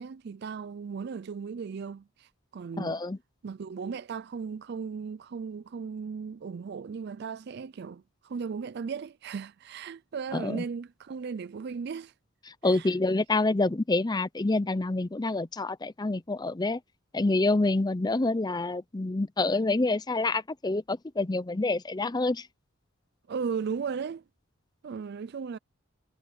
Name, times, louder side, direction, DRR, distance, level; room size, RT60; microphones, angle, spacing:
voice 1, 0.0-3.0 3.4-12.1 12.6-12.9 23.3-24.2 24.8-25.6, right 6 dB, 55° right, 0.4 m, -36 dB
voice 2, 2.8-3.2 10.3-10.6 12.5-16.8 17.1-22.5, left 2 dB, 20° left, 0.6 m, -27 dB
head